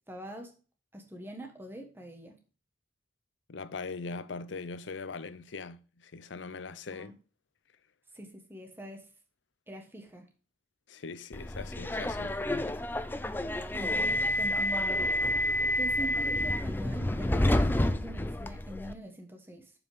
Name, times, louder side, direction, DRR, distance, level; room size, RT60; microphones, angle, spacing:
voice 1, 0.1-0.5 0.9-2.3 6.9-7.2 8.1-9.1 9.7-10.3 13.7-15.1 15.8-19.7, equal, 10° right, 1.4 m, -43 dB
voice 2, 3.5-7.1 10.9-12.4, left 4 dB, 80° left, 0.6 m, -41 dB
Subway metro underground, 11.3-18.9, left 1 dB, 10° left, 0.4 m, -29 dB
7.0 x 5.4 x 5.0 m
head